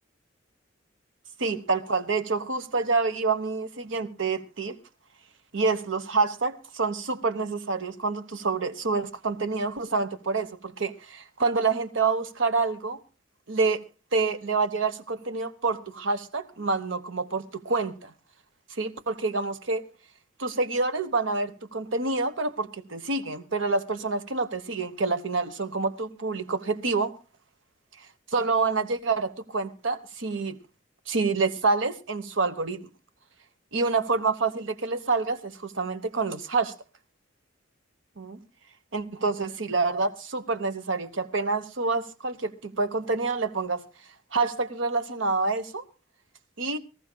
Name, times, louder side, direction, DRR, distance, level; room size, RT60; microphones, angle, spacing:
voice 1, 1.4-4.8 5.5-13.0 13.5-13.8 14.1-18.1 18.8-19.8 20.4-27.2 28.3-30.6 31.1-32.8 33.7-36.7 38.2-38.4 38.9-43.8 44.3-45.8 46.6-46.8, right 3 dB, 75° right, 1.1 m, -27 dB
24.0 x 14.0 x 2.2 m
head